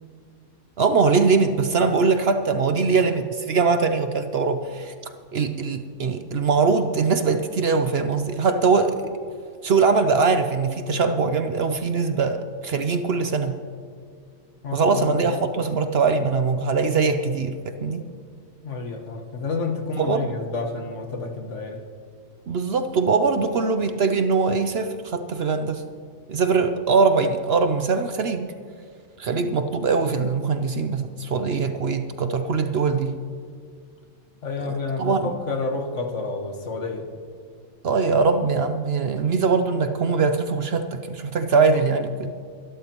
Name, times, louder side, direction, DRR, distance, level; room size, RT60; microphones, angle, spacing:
voice 1, 0.8-4.9 5.3-9.1 9.6-13.6 14.7-18.0 20.0-20.3 22.5-25.9 26.3-28.5 29.2-33.2 34.7-35.3 37.8-42.3, right 4 dB, 60° right, 8 dB, 0.8 m, -22 dB
voice 2, 14.6-15.4 18.6-21.8 34.4-37.1, left 3 dB, 65° left, 4 dB, 1.6 m, -29 dB
24.0 x 12.0 x 3.0 m, 2.1 s
omnidirectional pair, 1.4 m